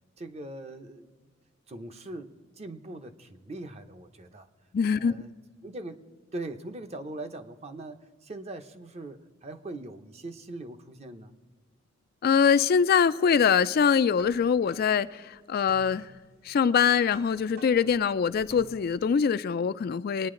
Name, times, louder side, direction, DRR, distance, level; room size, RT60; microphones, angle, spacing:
voice 1, 0.2-1.1 1.7-4.5 4.9-5.3 5.6-6.0 6.3-11.3, right 2 dB, 35° right, 0.7 m, -41 dB
voice 2, 4.7-5.1 12.2-16.1 16.4-20.3, left 6 dB, 50° left, 0.3 m, -23 dB
sound 1, 13.8-19.2, right 1 dB, 50° right, 1.0 m, -52 dB
24.0 x 9.7 x 3.8 m
head